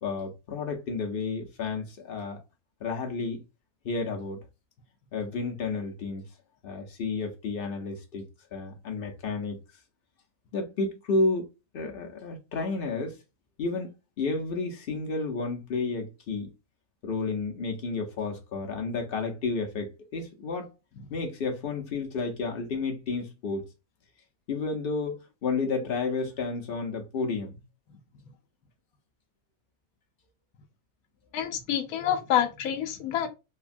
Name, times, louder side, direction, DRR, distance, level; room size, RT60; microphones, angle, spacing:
voice 1, 0.0-2.4 2.8-3.4 3.8-4.4 5.1-6.3 6.6-8.2 8.5-9.6 10.5-11.5 11.7-13.2 13.6-13.9 14.2-16.5 17.0-20.7 21.1-23.6 24.5-27.6, left 3 dB, 60° left, 0.6 m, -31 dB
voice 2, 31.3-33.3, left 10 dB, 80° left, 1.0 m, -27 dB
3.3 x 2.1 x 2.5 m
omnidirectional pair, 1.6 m